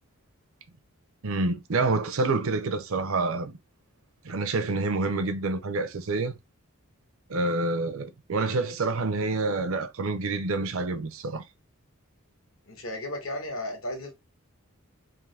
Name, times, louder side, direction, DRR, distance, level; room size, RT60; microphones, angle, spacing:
voice 1, 1.2-3.6 4.2-6.4 7.3-11.4, right 3 dB, 70° right, 0.6 m, -27 dB
voice 2, 12.7-14.1, left 1 dB, 70° left, 1.6 m, -34 dB
3.7 x 3.0 x 3.3 m
head